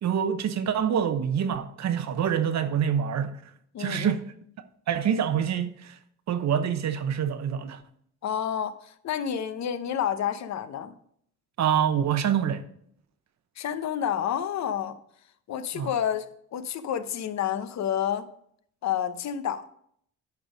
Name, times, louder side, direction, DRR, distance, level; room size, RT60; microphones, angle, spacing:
voice 1, 0.0-3.5 3.8-4.2 4.9-6.0 6.3-7.8 11.6-12.6 15.7-15.9, right 8 dB, 65° right, 0.9 m, -26 dB
voice 2, 3.7-4.2 8.2-11.0 13.6-15.0 15.5-18.3 18.8-19.6, left 9 dB, 65° left, 0.9 m, -29 dB
10.5 x 5.5 x 5.1 m
cardioid pair, 90°, 30 cm